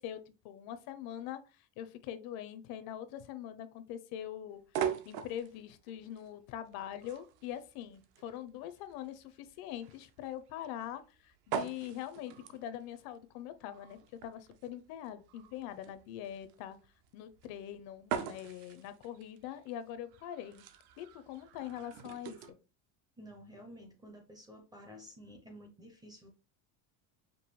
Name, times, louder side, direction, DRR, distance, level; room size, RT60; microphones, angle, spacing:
voice 1, 0.0-16.8 17.1-20.6 21.0-22.6, left 11 dB, 55° left, 12 dB, 0.5 m, -43 dB
sound 1, 4.6-22.5, right 8 dB, 60° right, 0.7 m, -43 dB
voice 2, 23.2-26.3, equal, 10° right, 2 dB, 0.5 m, -52 dB
5.3 x 2.6 x 3.0 m, 0.32 s
cardioid pair, 180°, 45 cm